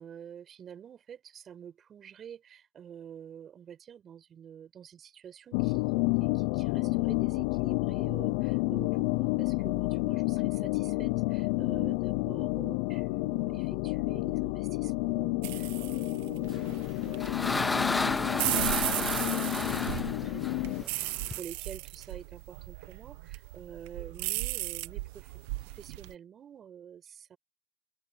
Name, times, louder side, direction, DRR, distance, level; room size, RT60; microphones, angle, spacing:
voice 1, 0.0-27.4, right 8 dB, 60° right, 7.7 m, -48 dB
sound 1, 5.5-20.8, left 26 dB, 85° left, 0.5 m, -30 dB
sound 2, 15.4-26.1, right 21 dB, 90° right, 0.9 m, -36 dB
sound 3, 16.7-21.4, left 3 dB, 25° left, 0.4 m, -32 dB
open air
hypercardioid pair, 55°, 0 cm